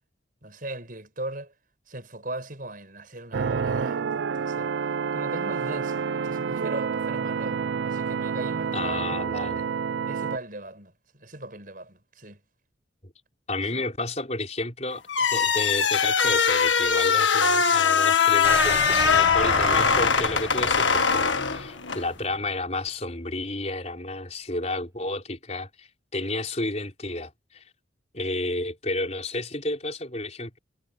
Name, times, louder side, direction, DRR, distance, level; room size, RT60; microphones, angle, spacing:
voice 1, 0.4-1.5 1.9-4.7 5.1-9.6 10.1-12.4 13.7-13.8, right 1 dB, 45° right, 6.3 m, -39 dB
sound 1, 3.3-10.4, right 6 dB, 65° right, 0.4 m, -28 dB
voice 2, 8.7-9.6 13.0-13.1 13.5-15.0 15.3-27.6 28.1-30.6, left 2 dB, 35° left, 4.9 m, -31 dB
sound 2, 15.1-22.1, left 6 dB, 75° left, 1.6 m, -21 dB
sound 3, 18.4-22.4 22.8-22.9, right 2 dB, 15° right, 0.7 m, -34 dB
head